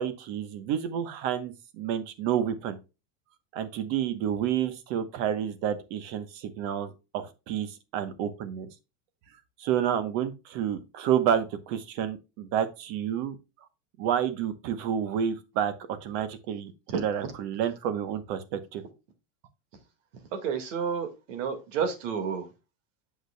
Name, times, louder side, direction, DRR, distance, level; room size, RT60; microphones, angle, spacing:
voice 1, 0.0-2.8 3.5-8.7 9.6-13.4 14.0-18.8, right 9 dB, 45° right, 1.1 m, -29 dB
voice 2, 20.3-22.5, right 6 dB, 80° right, 1.9 m, -30 dB
7.9 x 6.2 x 2.2 m
supercardioid pair, 160°, 37 cm